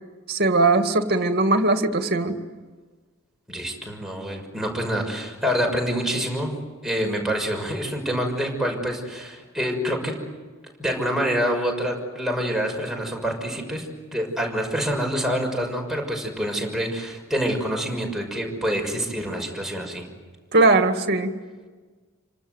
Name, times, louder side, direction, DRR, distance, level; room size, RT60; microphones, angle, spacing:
voice 1, 0.3-2.4 20.5-21.4, right 2 dB, 50° right, 6 dB, 2.2 m, -20 dB
voice 2, 3.5-6.5 6.8-10.2 10.8-20.1, equal, ahead, 1 dB, 6.1 m, -26 dB
29.0 x 25.5 x 8.1 m, 1.4 s
head